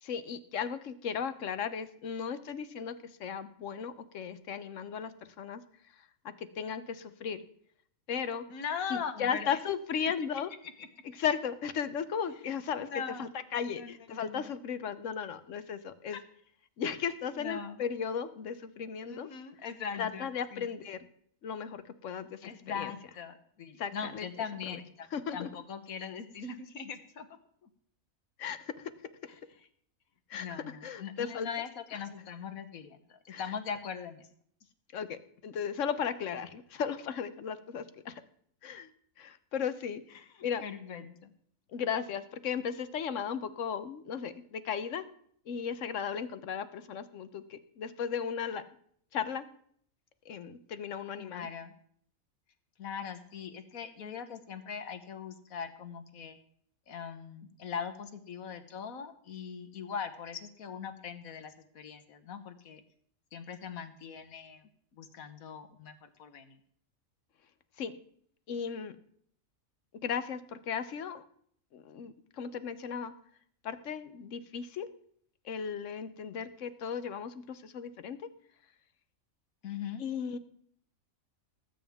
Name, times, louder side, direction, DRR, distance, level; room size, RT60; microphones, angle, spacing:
voice 1, 0.0-7.4 8.1-8.5 8.9-10.5 11.0-12.9 13.2-16.2 16.8-19.3 20.0-21.0 21.4-22.9 23.8-24.3 24.7-24.8 25.1-25.5 28.4-28.9 30.3-31.5 33.3-33.4 34.9-38.2 38.6-38.9 39.2-40.6 41.7-45.0 45.5-48.6 49.1-49.5 50.2-51.5 67.8-68.0 68.5-69.0 70.0-71.2 71.7-73.1 73.6-74.9 75.4-78.2 80.0-80.4, left 7 dB, 65° left, 12 dB, 1.1 m, -36 dB
voice 2, 8.5-9.6 10.8-10.9 12.8-13.3 13.8-14.5 16.1-16.2 17.3-17.8 19.1-20.7 22.4-27.7 30.3-34.3 40.1-40.2 40.6-41.3 51.2-51.7 52.8-56.4 56.9-62.8 63.3-66.6 79.6-80.0, left 7 dB, 85° left, 9 dB, 1.5 m, -41 dB
19.0 x 8.9 x 3.6 m, 0.64 s
omnidirectional pair, 1.4 m